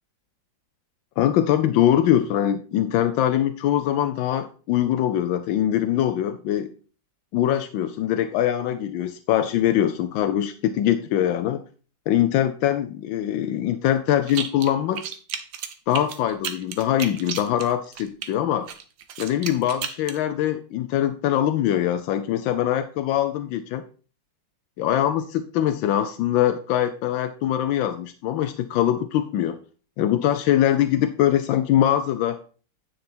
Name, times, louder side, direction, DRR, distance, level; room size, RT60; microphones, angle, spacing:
voice 1, 1.2-6.7 7.3-11.6 12.1-15.0 15.9-18.7 19.2-23.8 24.8-29.6 30.0-32.4, left 11 dB, 85° left, 10 dB, 1.3 m, -22 dB
sound 1, 14.3-14.7 15.0-18.3 18.7-20.2, right 8 dB, 85° right, 1.6 m, -33 dB
9.6 x 5.9 x 4.3 m, 0.39 s
omnidirectional pair, 2.1 m